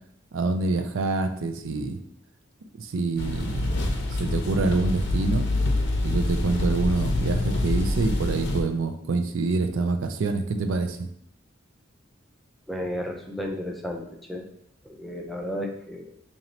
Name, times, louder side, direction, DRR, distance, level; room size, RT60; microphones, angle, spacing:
voice 1, 0.3-2.0 2.8-5.5 6.0-11.1, right 3 dB, 75° right, 8 dB, 0.4 m, -26 dB
sound 1, 3.2-8.6, left 2 dB, 60° left, 0.6 m, -26 dB
voice 2, 12.7-14.5 14.8-16.1, left 1 dB, ahead, 1 dB, 0.4 m, -33 dB
2.9 x 2.7 x 4.3 m, 0.71 s
head